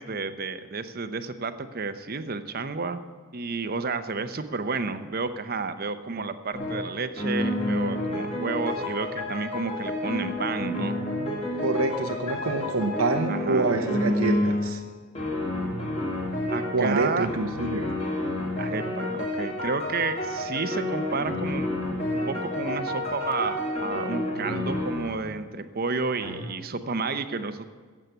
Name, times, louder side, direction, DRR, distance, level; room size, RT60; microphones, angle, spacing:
voice 1, 0.0-3.0 3.3-10.9 13.3-13.7 16.5-17.3 18.6-21.7 22.2-27.7, right 4 dB, 45° right, 10 dB, 0.8 m, -31 dB
sound 1, 6.5-6.9 7.2-14.8 15.1-16.8 17.2-25.1 26.2-26.4, left 1 dB, 30° left, 2.8 m, -29 dB
voice 2, 11.6-14.8 16.7-17.9, right 3 dB, 80° right, 6 dB, 0.8 m, -26 dB
16.0 x 7.5 x 8.1 m, 1.5 s
head